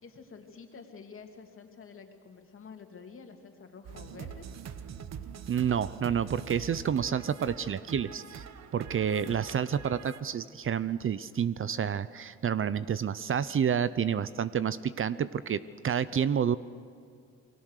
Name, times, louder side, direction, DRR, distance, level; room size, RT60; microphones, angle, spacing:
voice 1, 0.0-4.5, left 5 dB, 45° left, 4 dB, 2.9 m, -49 dB
sound 1, 3.8-10.2, right 7 dB, 60° right, 1.2 m, -44 dB
voice 2, 5.5-8.4 8.7-16.6, right 8 dB, 45° right, 15 dB, 0.7 m, -29 dB
29.0 x 20.5 x 6.6 m, 2.3 s
cardioid pair, 90°, 30 cm